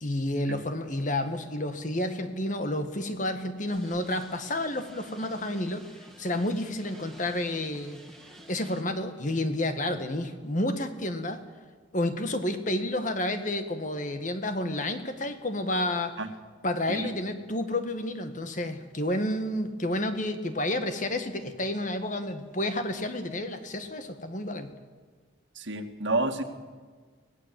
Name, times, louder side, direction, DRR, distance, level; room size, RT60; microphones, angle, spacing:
voice 1, 0.0-5.9 6.2-8.0 8.5-11.4 11.9-16.2 16.6-24.7, left 1 dB, 40° left, 8 dB, 1.7 m, -30 dB
sound 1, 3.7-8.8, right 1 dB, 5° left, 2.5 m, -51 dB
voice 2, 25.6-26.4, right 2 dB, 75° right, 6 dB, 2.0 m, -29 dB
24.0 x 17.5 x 7.7 m, 1.5 s
head